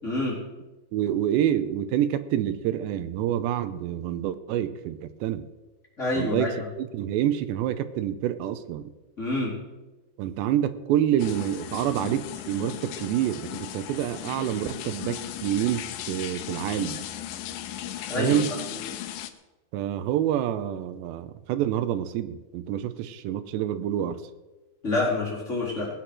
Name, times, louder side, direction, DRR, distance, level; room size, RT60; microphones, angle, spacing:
voice 1, 0.0-0.4 6.0-6.5 9.2-9.5 18.1-18.4 24.8-25.9, left 2 dB, 15° left, -5 dB, 4.0 m, -27 dB
voice 2, 0.9-5.5 6.1-8.9 10.2-17.0 18.2-18.5 19.7-24.2, right 11 dB, 80° right, 11 dB, 2.8 m, -27 dB
sound 1, 11.2-19.3, left 12 dB, 90° left, 2.0 m, -36 dB
18.5 x 8.1 x 6.2 m, 1.1 s
omnidirectional pair, 5.2 m